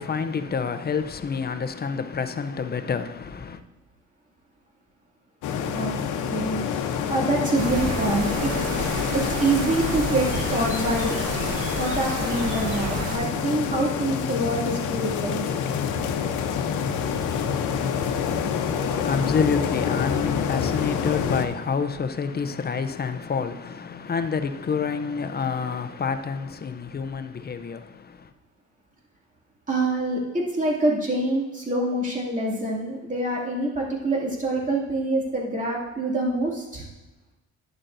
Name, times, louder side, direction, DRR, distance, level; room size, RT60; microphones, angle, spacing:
voice 1, 0.0-3.6 18.8-28.3, left 5 dB, 35° left, 0.6 m, -28 dB
sound 1, 5.4-21.5, left 7 dB, 85° left, 0.8 m, -27 dB
voice 2, 5.7-8.5 9.1-11.2 11.8-15.5 29.7-36.8, right 2 dB, 25° right, 2.5 m, -26 dB
sound 2, 7.6-13.2, right 2 dB, 55° right, 1.7 m, -31 dB
sound 3, 10.2-14.3 15.9-16.4, left 2 dB, 5° right, 3.2 m, -45 dB
11.0 x 9.0 x 2.6 m
cardioid pair, 90°, 30 cm